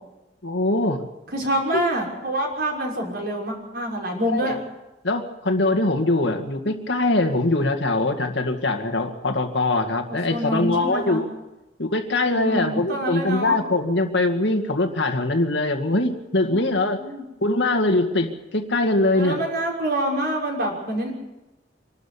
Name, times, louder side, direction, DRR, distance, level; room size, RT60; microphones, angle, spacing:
voice 1, 0.4-1.0 1.7-1.8 4.2-4.5 5.0-11.3 11.8-17.0 17.4-19.4, left 2 dB, 70° left, 6 dB, 2.1 m, -22 dB
voice 2, 1.3-4.6 10.1-11.2 12.3-13.6 16.5-16.6 17.0-17.2 19.1-21.1, right 1 dB, 60° right, -1 dB, 6.1 m, -26 dB
26.0 x 13.0 x 8.5 m, 1.0 s
head